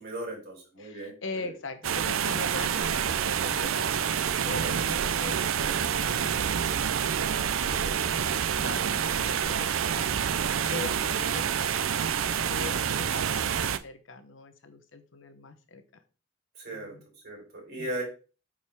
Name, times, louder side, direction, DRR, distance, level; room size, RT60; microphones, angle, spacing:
voice 1, 0.0-1.5 16.5-16.9 17.2-18.0, right 1 dB, 55° right, -2 dB, 4.7 m, -37 dB
voice 2, 0.8-3.9 4.4-10.1 10.6-11.4 12.3-15.8 16.7-17.1 17.8-18.0, left 3 dB, 70° left, 9 dB, 1.0 m, -41 dB
sound 1, 1.8-13.8, right 8 dB, 90° right, 0.5 m, -27 dB
8.8 x 5.0 x 3.6 m, 0.35 s
head